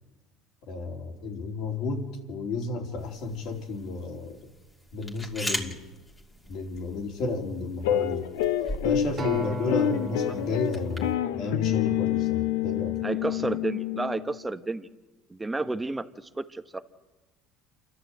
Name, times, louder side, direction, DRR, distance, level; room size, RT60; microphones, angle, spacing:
voice 1, 0.7-4.4 4.9-5.8 6.5-8.3 8.8-13.0, left 3 dB, 65° left, 2 dB, 3.4 m, -32 dB
sound 1, 3.0-11.1, left 1 dB, 10° left, 2.6 m, -40 dB
sound 2, 7.8-14.4, left 11 dB, 85° left, 0.9 m, -28 dB
Acoustic guitar, 9.2-13.6 14.2-14.4, right 5 dB, 35° right, 2.3 m, -40 dB
voice 2, 13.0-14.9 15.3-16.8, right 2 dB, 10° right, 9 dB, 1.1 m, -31 dB
27.5 x 12.0 x 7.9 m, 1.1 s
supercardioid pair, 100°, 0 cm